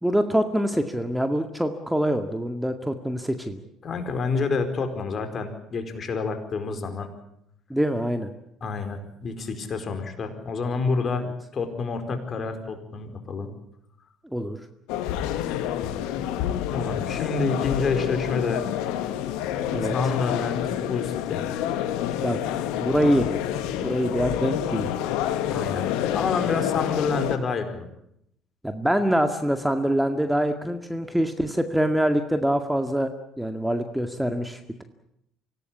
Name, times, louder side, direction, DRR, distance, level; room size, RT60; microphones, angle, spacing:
voice 1, 0.0-3.6 7.7-8.3 14.2-14.6 19.7-20.0 22.2-22.4 22.8-23.3 23.8-25.0 28.6-33.1 33.4-34.8, equal, 5° right, 7 dB, 2.0 m, -24 dB
voice 2, 3.8-7.1 8.6-13.5 16.7-18.7 19.9-21.4 25.5-27.9, left 4 dB, 40° left, 7 dB, 4.7 m, -28 dB
sound 1, 14.9-27.4, left 11 dB, 70° left, 1.7 m, -28 dB
25.5 x 17.0 x 8.6 m, 0.75 s
hypercardioid pair, 55°, 0 cm